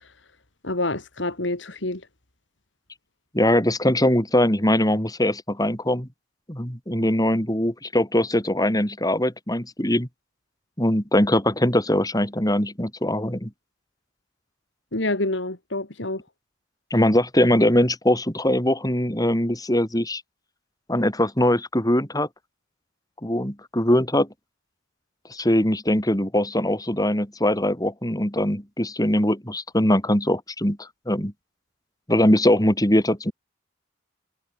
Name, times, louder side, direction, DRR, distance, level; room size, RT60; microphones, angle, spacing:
voice 1, 0.6-2.0 14.9-16.2, left 2 dB, 65° left, 3.1 m, -27 dB
voice 2, 3.3-6.1 6.5-10.1 10.8-13.5 16.9-20.2 20.9-22.3 23.2-24.3 25.3-31.3 32.1-33.3, left 1 dB, 20° left, 5.7 m, -21 dB
head